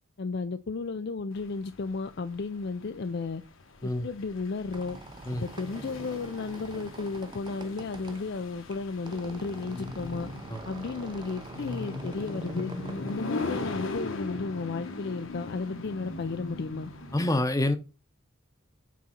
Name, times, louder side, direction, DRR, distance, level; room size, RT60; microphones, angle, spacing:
voice 1, 0.2-3.4 3.8-5.0 5.4-10.3 10.6-12.7 13.0-16.9, left 4 dB, 50° left, 0.4 m, -33 dB
sound 1, 1.4-17.2, left 2 dB, 70° left, 1.2 m, -39 dB
Squeak, 4.4-14.0, right 2 dB, 20° right, 0.5 m, -45 dB
voice 2, 17.1-17.8, left 1 dB, 15° left, 0.7 m, -27 dB
6.2 x 4.1 x 5.7 m
head